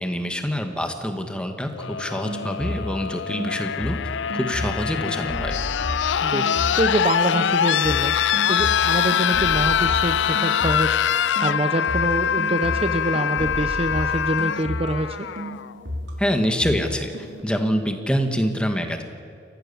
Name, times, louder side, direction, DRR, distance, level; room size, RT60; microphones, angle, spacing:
voice 1, 0.0-4.0 4.3-5.6 16.2-19.0, equal, 5° left, 5 dB, 1.8 m, -25 dB
sound 1, 1.7-15.7 16.9-17.0, left 8 dB, 80° left, 0.4 m, -24 dB
Escaping the Bamboo Cage, 2.2-3.0 3.3-7.0 7.3-15.1 15.4-17.4, equal, 90° right, 4.6 m, -32 dB
voice 2, 6.2-8.2 8.5-11.0 11.4-15.3, right 1 dB, 35° right, 8 dB, 0.8 m, -25 dB
29.0 x 15.0 x 7.1 m, 2.4 s
head